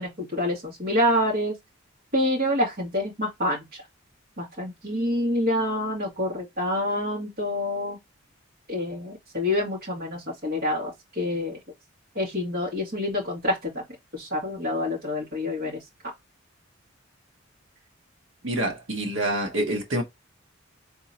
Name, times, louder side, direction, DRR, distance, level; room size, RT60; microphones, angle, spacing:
voice 1, 0.0-1.6 2.1-3.9 4.4-8.0 8.7-11.6 12.1-13.8 14.1-15.8, left 1 dB, 50° right, 2.4 m, -27 dB
voice 2, 18.4-20.0, right 1 dB, 75° right, 1.1 m, -26 dB
4.1 x 3.6 x 2.8 m
head